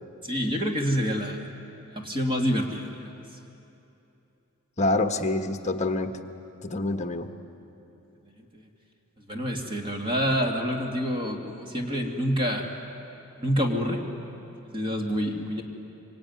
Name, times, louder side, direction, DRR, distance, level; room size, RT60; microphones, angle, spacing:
voice 1, 0.2-1.4 1.8-2.9 8.2-8.6 9.3-12.7 13.4-14.0 14.6-15.6, equal, 25° right, 1 dB, 2.7 m, -27 dB
voice 2, 4.8-6.2 6.6-7.3, left 2 dB, 30° left, 6 dB, 1.3 m, -26 dB
25.0 x 24.5 x 9.6 m, 2.9 s
head